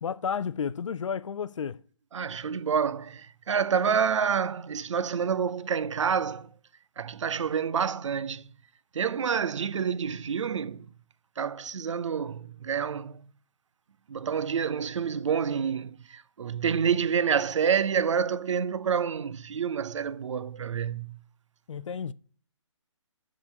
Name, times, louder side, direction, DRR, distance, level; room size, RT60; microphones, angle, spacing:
voice 1, 0.0-1.8 21.7-22.1, left 7 dB, 70° left, 0.4 m, -32 dB
voice 2, 2.1-6.5 7.0-8.5 8.9-10.9 11.4-13.3 14.1-21.2, right 7 dB, 70° right, 0.5 m, -28 dB
9.4 x 3.8 x 5.3 m
figure-of-eight pair, 145°, 16 cm